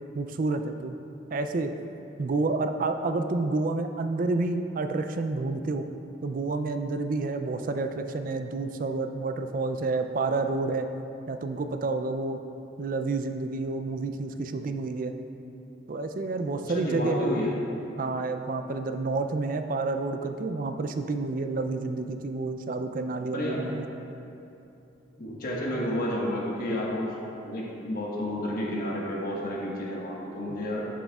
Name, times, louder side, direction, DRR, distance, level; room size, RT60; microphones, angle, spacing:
voice 1, 0.1-1.0 1.3-1.7 2.2-5.9 6.2-10.9 11.3-12.4 12.8-15.1 15.9-17.3 18.0-23.9, right 3 dB, 45° right, 7 dB, 0.3 m, -29 dB
voice 2, 16.7-17.5 23.3-23.7 25.1-27.1 27.4-30.9, left 1 dB, 50° left, -4 dB, 1.4 m, -30 dB
11.5 x 6.3 x 2.3 m, 2.7 s
head